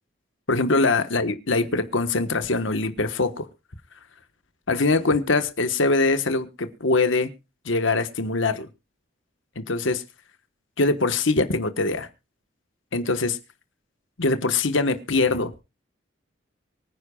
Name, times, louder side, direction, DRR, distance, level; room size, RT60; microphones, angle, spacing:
voice 1, 0.5-3.5 4.7-7.3 7.6-8.7 9.6-10.0 10.8-12.1 12.9-13.4 14.2-15.5, left 3 dB, 70° left, 1.3 m, -23 dB
24.0 x 10.0 x 2.3 m
head